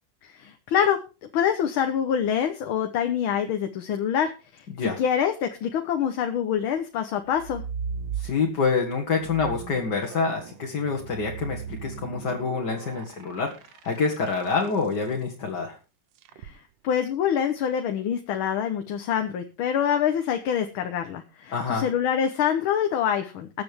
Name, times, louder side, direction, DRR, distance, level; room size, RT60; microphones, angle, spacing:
voice 1, 0.2-1.0 1.3-4.6 5.0-7.6 16.4-16.5 16.8-23.6, left 8 dB, 80° left, 6 dB, 1.8 m, -25 dB
sound 1, 7.3-8.7 9.2-14.7 16.2-16.6, right 7 dB, 70° right, 1.4 m, -37 dB
voice 2, 8.2-15.8 21.5-21.9, left 4 dB, 55° left, 1 dB, 2.3 m, -27 dB
21.0 x 7.7 x 3.5 m, 0.30 s
omnidirectional pair, 2.2 m